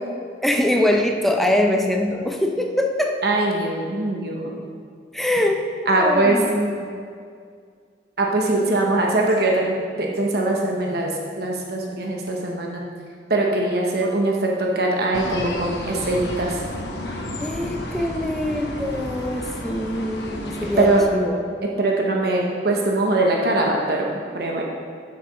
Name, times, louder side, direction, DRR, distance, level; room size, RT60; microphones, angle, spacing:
voice 1, 0.4-3.2 5.1-6.9 17.4-21.4, left 1 dB, ahead, 2 dB, 0.6 m, -23 dB
voice 2, 3.2-4.6 5.9-6.4 8.2-12.9 13.3-16.6 20.8-21.0 21.8-24.6, right 2 dB, 60° right, -1 dB, 1.0 m, -22 dB
sound 1, 15.1-21.0, left 1 dB, 65° left, 1.1 m, -32 dB
8.2 x 6.8 x 5.3 m, 2.2 s
head